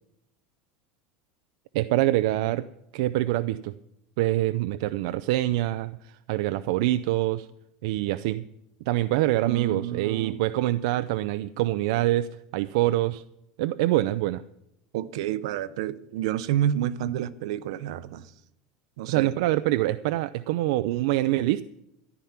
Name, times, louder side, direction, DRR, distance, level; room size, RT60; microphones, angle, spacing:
voice 1, 1.7-2.7 2.9-3.7 4.2-7.5 7.8-8.4 8.9-13.2 13.6-14.4 19.1-21.6, right 16 dB, 70° right, 0.5 m, -25 dB
voice 2, 9.4-10.4 14.9-18.2 19.0-19.3, right 11 dB, 85° right, 0.9 m, -29 dB
14.0 x 11.0 x 5.9 m
cardioid pair, 170°, 3 cm